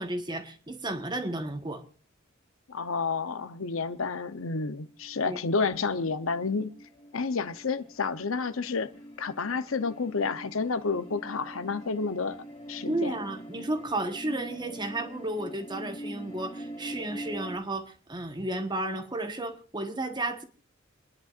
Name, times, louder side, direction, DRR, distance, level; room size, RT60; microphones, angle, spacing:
voice 1, 0.0-1.8 5.2-5.4 12.9-20.4, right 2 dB, 20° right, 1.3 m, -33 dB
voice 2, 2.7-6.7 7.1-8.9 9.2-12.4 12.7-13.2, left 4 dB, 75° left, 0.9 m, -30 dB
sound 1, 4.6-17.6, equal, 30° left, 2.8 m, -44 dB
29.5 x 10.5 x 2.5 m
head